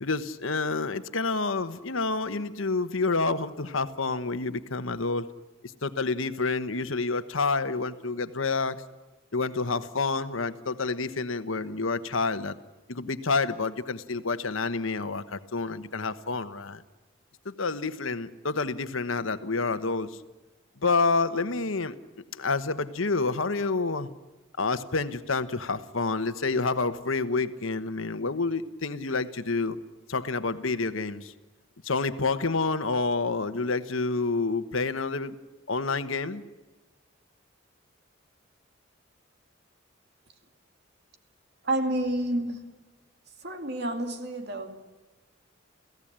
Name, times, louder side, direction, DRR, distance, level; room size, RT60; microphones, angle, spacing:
voice 1, 0.0-5.3 5.8-8.8 9.3-12.6 12.9-16.8 17.4-20.2 20.8-21.9 22.3-24.1 24.6-29.8 30.1-31.3 31.8-35.4 35.7-36.4, left 3 dB, 80° left, 1.2 m, -28 dB
voice 2, 41.6-42.7 43.4-44.8, right 1 dB, 55° right, 2.4 m, -29 dB
29.5 x 16.5 x 8.9 m
head